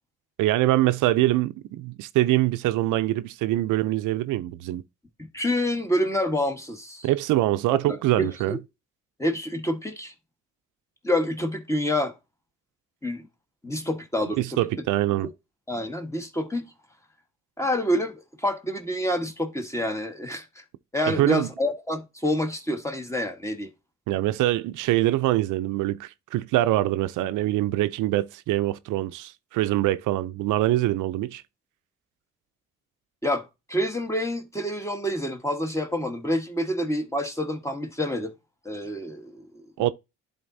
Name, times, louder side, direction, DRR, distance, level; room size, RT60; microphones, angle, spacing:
voice 1, 0.4-4.8 7.0-8.6 14.4-15.3 21.1-21.5 24.1-31.4 39.8-39.9, right 15 dB, 85° right, 0.5 m, -24 dB
voice 2, 5.2-7.1 7.9-8.6 9.2-10.1 11.0-12.1 13.0-13.3 13.6-14.6 15.2-15.3 15.7-16.7 17.6-20.6 20.9-23.7 33.2-38.3 38.6-39.9, left 1 dB, 10° left, 1.3 m, -28 dB
11.0 x 4.0 x 2.6 m
cardioid pair, 90°, 30 cm